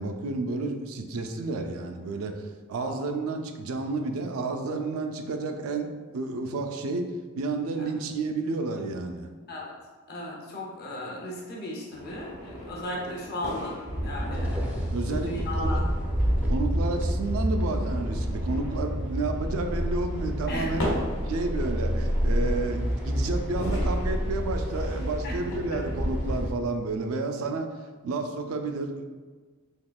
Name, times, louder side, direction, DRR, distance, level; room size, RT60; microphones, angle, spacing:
voice 1, 0.0-2.4 2.7-9.3 14.9-15.3 15.6-15.8 16.5-20.9 21.3-27.7 28.0-29.0, right 3 dB, 85° right, 5 dB, 0.4 m, -31 dB
voice 2, 10.1-15.9 20.5-20.7 25.2-25.4 25.7-25.8, left 1 dB, 50° left, -2 dB, 0.7 m, -36 dB
sound 1, 11.9-26.4, equal, 85° left, 1.1 m, -39 dB
sound 2, 13.9-26.5, equal, 5° right, 0.4 m, -28 dB
3.6 x 2.9 x 2.3 m, 1.4 s
head